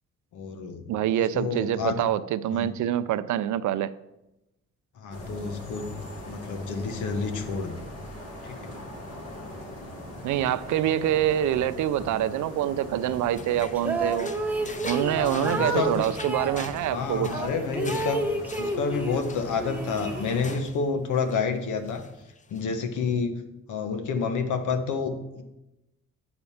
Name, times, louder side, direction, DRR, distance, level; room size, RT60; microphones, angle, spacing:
voice 1, 0.3-0.9 1.3-2.0 2.5-2.7 5.0-5.9 6.3-7.8 8.4-8.7 15.1-16.1 16.9-18.2 18.6-22.0 22.5-23.4 23.7-25.4, left 5 dB, 80° left, 7 dB, 1.2 m, -29 dB
voice 2, 0.9-3.9 10.2-14.3 14.8-17.3, right 11 dB, 75° right, 14 dB, 0.5 m, -26 dB
sound 1, 5.1-20.6, left 1 dB, 55° left, 2.2 m, -41 dB
sound 2, 13.0-20.9 21.1-21.5 21.8-22.6, left 4 dB, 25° left, 0.6 m, -45 dB
sound 3, 13.8-16.6 17.3-19.3 19.6-20.7, right 2 dB, 5° right, 1.1 m, -31 dB
8.9 x 4.3 x 7.1 m, 0.93 s
cardioid pair, 90°, 30 cm